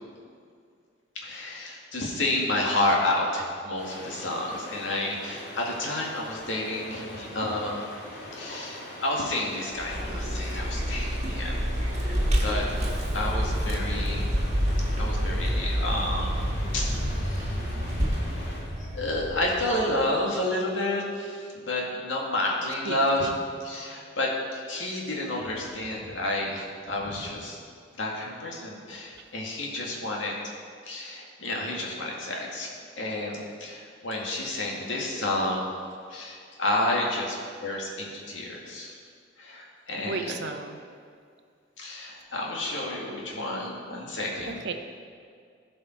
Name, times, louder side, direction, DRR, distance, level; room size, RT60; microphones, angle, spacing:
voice 1, 1.2-7.8 8.4-11.5 12.0-12.2 12.4-12.6 13.1-14.3 15.0-16.3 16.7-16.9 17.2-17.5 18.9-23.3 23.6-27.6 28.0-30.3 30.9-32.7 33.0-35.6 36.1-37.4 37.6-39.0 39.4-40.4 41.8-44.6, left 1 dB, 80° left, -2 dB, 2.0 m, -30 dB
sound 1, 3.8-18.6, left 1 dB, 55° left, 2.3 m, -42 dB
Vehicle, 9.7-20.1, equal, 35° right, 1.5 m, -28 dB
voice 2, 22.9-23.3 40.1-40.8 44.4-44.7, right 4 dB, 60° right, 6 dB, 0.7 m, -34 dB
15.5 x 5.5 x 4.5 m, 2.2 s
head